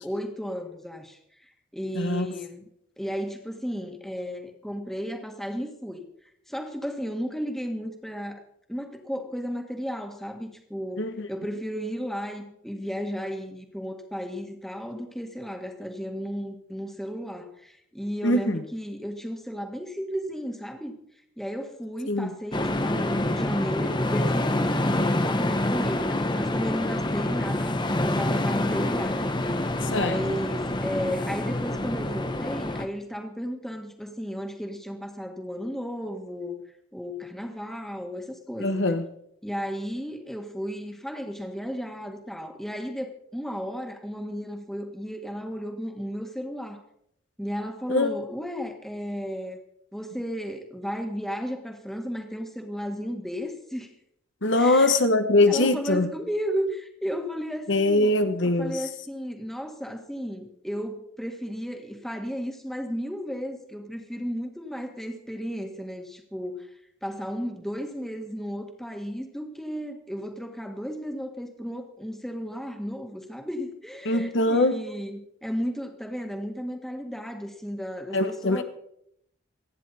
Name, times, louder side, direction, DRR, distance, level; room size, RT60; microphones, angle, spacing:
voice 1, 0.0-2.6 3.0-6.0 6.5-8.4 8.7-21.0 21.4-36.6 36.9-39.0 39.4-46.8 47.4-49.6 49.9-53.9 54.6-54.9 55.5-58.2 58.4-66.7 67.0-78.6, equal, ahead, 1.8 m, -34 dB
voice 2, 1.9-2.3 11.0-11.3 18.2-18.6 22.1-22.3 29.9-30.2 38.6-39.0 47.9-48.1 54.4-56.1 57.7-58.8 74.1-74.8 78.1-78.6, left 2 dB, 65° left, 1.1 m, -22 dB
sound 1, 22.5-32.9, left 1 dB, 20° left, 0.9 m, -26 dB
27.5 x 9.9 x 4.2 m
head